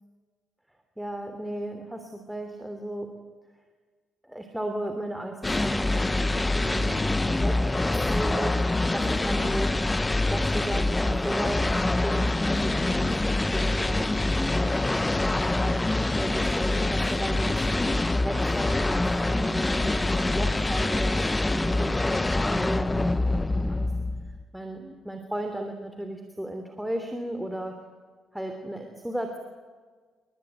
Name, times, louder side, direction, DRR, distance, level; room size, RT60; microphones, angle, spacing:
voice 1, 1.0-3.1 4.2-7.6 8.1-8.6 8.9-9.7 10.3-11.7 12.0-17.9 18.2-23.9 24.5-27.8 28.3-29.4, right 1 dB, 5° right, 5 dB, 3.1 m, -35 dB
sound 1, 5.4-24.4, left 2 dB, 15° left, 1.0 m, -25 dB
29.0 x 20.5 x 9.2 m, 1.5 s
cardioid pair, 90°, 0 cm